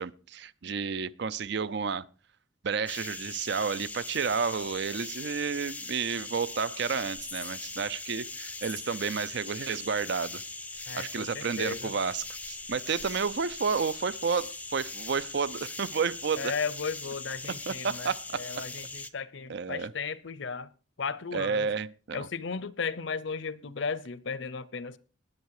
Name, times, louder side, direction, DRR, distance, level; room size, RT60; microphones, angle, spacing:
voice 1, 0.0-2.0 2.6-10.4 10.9-16.5 17.7-18.4 19.5-19.9 21.3-22.3, right 5 dB, 55° right, 0.5 m, -31 dB
sound 1, 2.9-19.1, left 3 dB, 10° left, 0.5 m, -40 dB
voice 2, 10.9-11.9 16.4-20.7 21.0-21.7 22.1-25.0, left 5 dB, 65° left, 0.8 m, -35 dB
19.5 x 8.1 x 4.8 m
head